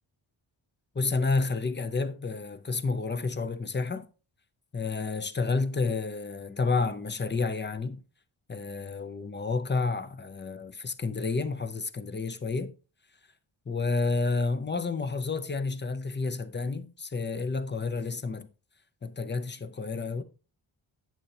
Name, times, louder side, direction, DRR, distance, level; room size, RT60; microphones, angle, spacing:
voice 1, 0.9-4.1 4.7-8.0 8.5-12.7 13.7-18.5 19.0-20.2, left 4 dB, 25° left, 0.5 m, -30 dB
8.3 x 7.6 x 2.7 m
wide cardioid pair, 125°, 49 cm